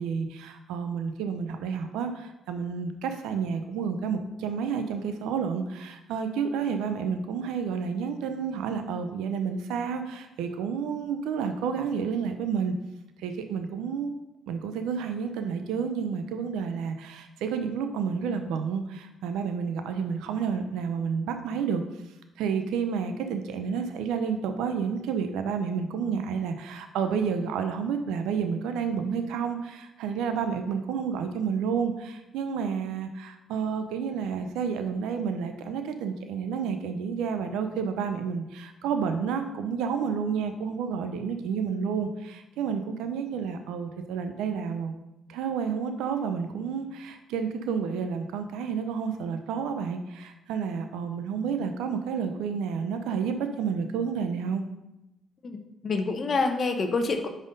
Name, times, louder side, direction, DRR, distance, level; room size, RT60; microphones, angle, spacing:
voice 1, 0.0-12.8 13.2-14.1 14.5-21.8 22.4-44.9 45.3-54.6, right 6 dB, 90° right, 7 dB, 0.5 m, -30 dB
voice 2, 55.4-57.3, left 3 dB, 50° left, 5 dB, 0.7 m, -27 dB
5.2 x 4.1 x 5.1 m, 0.91 s
supercardioid pair, 70°, 0 cm